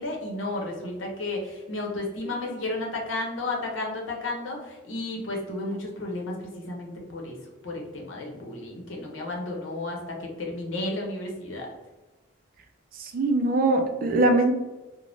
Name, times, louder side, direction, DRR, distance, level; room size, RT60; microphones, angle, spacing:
voice 1, 0.0-7.3 7.6-11.7, left 2 dB, 85° left, 0 dB, 0.8 m, -33 dB
voice 2, 13.0-14.5, right 2 dB, 50° right, 5 dB, 0.4 m, -22 dB
2.6 x 2.1 x 3.3 m, 1.1 s
head